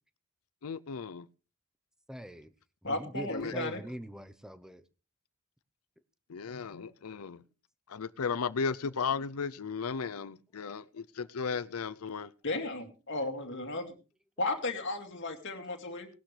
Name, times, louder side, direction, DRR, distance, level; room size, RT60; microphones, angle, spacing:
voice 1, 0.6-1.3 3.3-3.5 6.3-7.4 7.9-12.3, left 5 dB, 75° left, 0.6 m, -35 dB
voice 2, 2.1-2.5 2.8-4.8, equal, 5° right, 0.8 m, -42 dB
voice 3, 2.8-3.8 12.4-13.9 14.4-16.1, left 2 dB, 55° left, 2.4 m, -34 dB
18.5 x 12.0 x 3.3 m
head